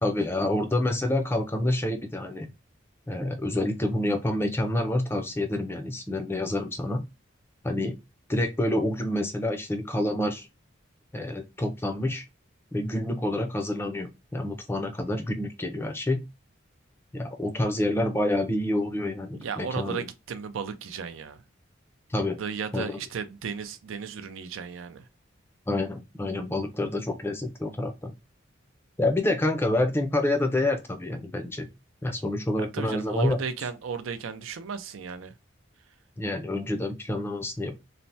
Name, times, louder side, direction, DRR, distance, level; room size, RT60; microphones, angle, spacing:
voice 1, 0.0-2.5 3.1-7.0 7.6-8.0 8.3-10.5 11.1-12.2 12.7-16.2 17.1-20.0 22.1-22.4 22.7-23.0 25.7-28.1 29.0-31.7 32.0-33.4 36.2-37.7, left 1 dB, 10° left, 0.4 m, -28 dB
voice 2, 19.4-21.4 22.4-25.1 32.6-35.3, right 6 dB, 90° right, 0.5 m, -35 dB
3.2 x 2.0 x 2.6 m
head